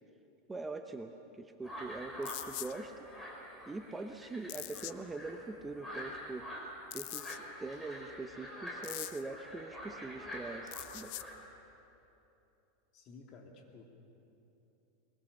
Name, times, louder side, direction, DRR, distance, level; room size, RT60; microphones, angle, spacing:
voice 1, 0.5-3.1 3.7-6.5 6.9-11.1, right 3 dB, 10° right, 6 dB, 0.8 m, -43 dB
sound 1, 1.6-11.3, equal, 5° left, 4.8 m, -46 dB
sound 2, 2.2-2.7 4.5-4.9 6.9-7.4 8.8-9.2 10.7-11.2, left 17 dB, 55° left, 0.7 m, -42 dB
voice 2, 12.9-13.8, left 4 dB, 40° left, 2 dB, 3.0 m, -53 dB
22.5 x 22.0 x 7.0 m, 2.9 s
supercardioid pair, 150°, 0 cm